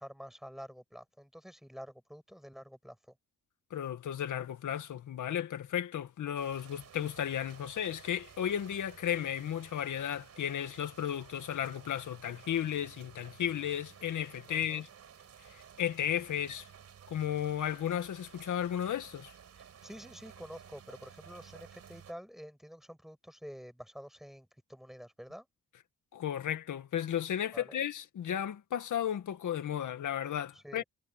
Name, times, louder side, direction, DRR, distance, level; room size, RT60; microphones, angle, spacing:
voice 1, 0.0-3.1 14.5-14.9 19.8-25.5 27.5-27.8 30.5-30.8, equal, ahead, 7.4 m, -48 dB
voice 2, 3.7-14.9 15.5-16.7 17.1-19.3 26.1-30.8, left 10 dB, 75° left, 2.1 m, -34 dB
sound 1, 6.4-22.1, right 8 dB, 55° right, 5.4 m, -54 dB
wide cardioid pair, 175°, 31 cm